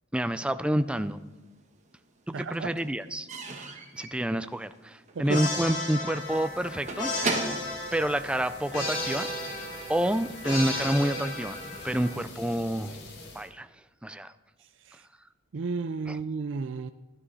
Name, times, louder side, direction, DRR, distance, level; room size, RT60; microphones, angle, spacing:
voice 1, 0.1-1.2 2.3-3.3 3.9-7.1 7.4-7.5 7.9-9.3 9.9-11.6 11.8-13.0 13.3-13.7 14.0-14.3 16.1-16.2, right 1 dB, 5° right, 0.4 m, -28 dB
Slam / Squeak / Wood, 1.0-8.9, right 3 dB, 35° right, 1.4 m, -37 dB
voice 2, 2.3-2.7 5.1-5.4 14.8-15.0 15.5-16.9, right 4 dB, 65° right, 0.4 m, -33 dB
sound 1, 5.3-12.2, left 2 dB, 80° left, 4.3 m, -34 dB
sound 2, 6.1-13.5, left 2 dB, 55° left, 1.7 m, -46 dB
12.5 x 12.0 x 4.1 m
head